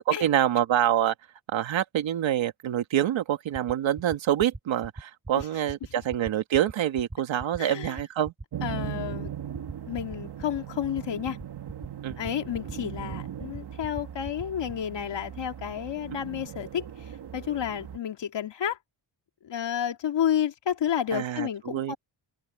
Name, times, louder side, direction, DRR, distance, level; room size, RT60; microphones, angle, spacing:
voice 1, 0.1-1.1 1.5-8.3 12.0-12.2 21.1-22.0, right 11 dB, 85° right, 1.9 m, -26 dB
sound 1, 3.5-14.8, right 2 dB, 20° right, 3.3 m, -40 dB
voice 2, 7.6-8.0 8.6-9.3 9.9-11.4 12.2-16.8 17.3-18.8 19.4-22.0, left 9 dB, 70° left, 2.2 m, -30 dB
sound 2, 8.5-18.0, right 10 dB, 60° right, 1.8 m, -39 dB
cardioid pair, 95°, 45 cm